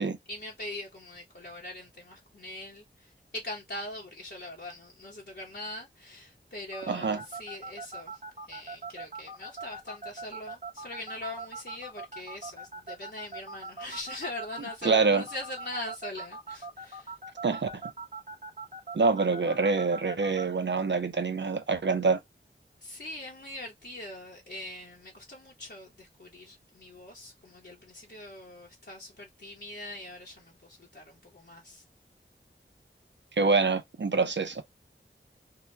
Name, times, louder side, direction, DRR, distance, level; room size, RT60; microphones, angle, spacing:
voice 1, 0.0-8.2 8.5-17.1 22.8-31.8, left 1 dB, 55° left, 0.9 m, -42 dB
sound 1, 6.7-20.4, right 3 dB, 40° right, 0.9 m, -40 dB
voice 2, 6.9-7.2 14.8-15.2 17.4-17.7 18.9-22.2 33.4-34.6, right 4 dB, 60° right, 0.5 m, -25 dB
2.8 x 2.2 x 3.2 m
wide cardioid pair, 45°, 20 cm